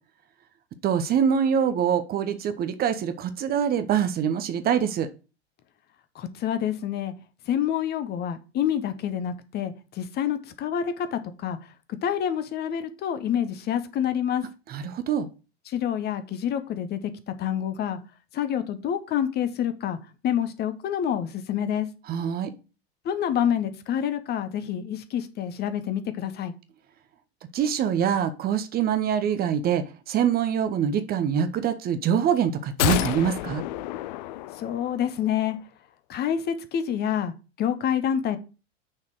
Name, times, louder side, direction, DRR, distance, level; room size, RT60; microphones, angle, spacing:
voice 1, 0.8-5.1 14.7-15.3 22.1-22.5 27.5-33.6, right 8 dB, 30° right, 0.8 m, -24 dB
voice 2, 6.1-7.1 7.5-11.6 11.9-14.4 15.7-18.0 18.3-20.0 20.2-21.9 23.0-26.5 34.5-35.6 36.1-38.4, left 9 dB, 30° left, 0.9 m, -27 dB
sound 1, 32.8-35.2 35.4-35.5, left 16 dB, 45° left, 0.4 m, -29 dB
6.3 x 4.2 x 6.3 m
figure-of-eight pair, 80°, 32 cm